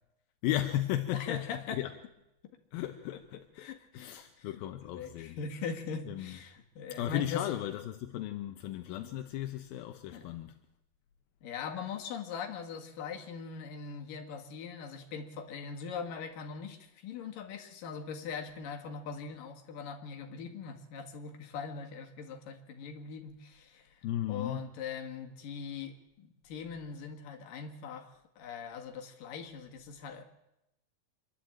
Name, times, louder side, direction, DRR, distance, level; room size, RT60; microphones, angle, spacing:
voice 1, 0.4-1.9 2.7-3.7 3.9-5.4 6.1-6.4 6.9-10.6 24.0-24.7, left 12 dB, 75° left, 2.4 m, -35 dB
voice 2, 1.1-1.8 3.6-7.4 10.1-10.3 11.4-28.1 28.4-30.2, left 6 dB, 60° left, 3.3 m, -41 dB
26.5 x 11.5 x 8.8 m
omnidirectional pair, 4.8 m